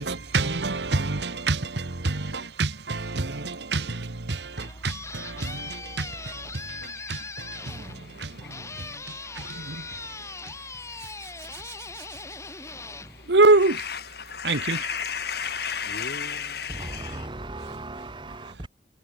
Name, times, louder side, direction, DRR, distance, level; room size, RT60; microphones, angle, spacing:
voice 1, 0.0-10.1 10.4-10.5 11.5-11.7 13.3-13.8 14.4-14.8, right 3 dB, 75° right, 1.4 m, -27 dB
sound 1, 4.3-14.0, left 3 dB, 15° left, 3.7 m, -40 dB
voice 2, 6.6-17.4, left 7 dB, 65° left, 4.8 m, -37 dB
voice 3, 16.7-18.7, right 2 dB, 30° right, 1.7 m, -37 dB
head